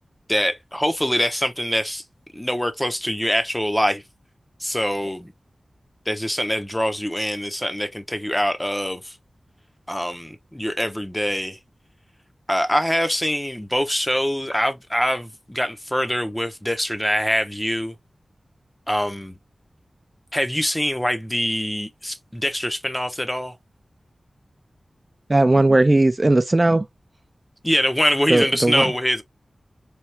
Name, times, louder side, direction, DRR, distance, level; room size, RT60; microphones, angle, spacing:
voice 1, 0.3-2.0 2.3-4.0 4.6-5.3 6.1-9.2 9.9-11.6 12.5-17.9 18.9-19.4 20.3-23.5 27.6-29.2, equal, 10° left, 0.6 m, -24 dB
voice 2, 25.3-26.9 28.3-28.9, right 2 dB, 35° right, 0.4 m, -17 dB
3.3 x 2.3 x 2.8 m
wide cardioid pair, 65°, 0 cm